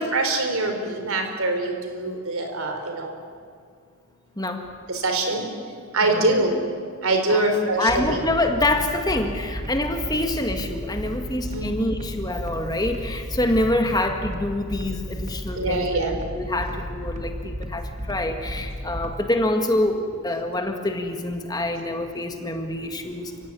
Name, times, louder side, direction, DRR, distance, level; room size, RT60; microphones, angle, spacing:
voice 1, 0.0-3.1 4.9-5.5 5.9-6.6 7.0-8.2 11.5-11.7 15.6-16.2, right 2 dB, 75° right, 5 dB, 4.1 m, -24 dB
voice 2, 4.4-4.7 6.0-6.3 7.3-16.0 16.3-23.3, left 1 dB, 20° left, 5 dB, 1.8 m, -26 dB
sound 1, 7.9-19.1, equal, 30° right, 1.9 m, -33 dB
29.0 x 16.5 x 9.9 m, 2.1 s
head